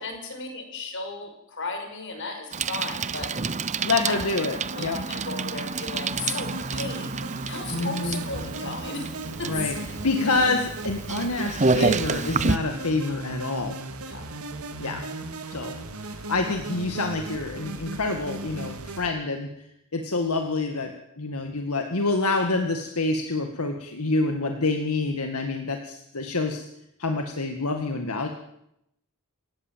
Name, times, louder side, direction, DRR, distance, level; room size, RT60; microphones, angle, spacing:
voice 1, 0.0-3.3 4.1-4.3 4.7-7.1 7.5-9.1 9.4-9.7 14.0-14.3, left 3 dB, 60° left, 5 dB, 5.8 m, -35 dB
Bicycle, 2.5-12.6, right 4 dB, 35° right, 0.8 m, -29 dB
voice 2, 3.8-5.0 7.7-8.2 9.4-9.8 10.0-13.7 14.8-15.0 15.5-15.7 16.0-19.5 19.9-26.7 27.0-28.3, left 3 dB, 85° left, 4 dB, 1.9 m, -27 dB
sound 1, 6.1-19.1, right 2 dB, 80° right, 2.3 m, -36 dB
28.0 x 17.0 x 7.5 m, 0.81 s
head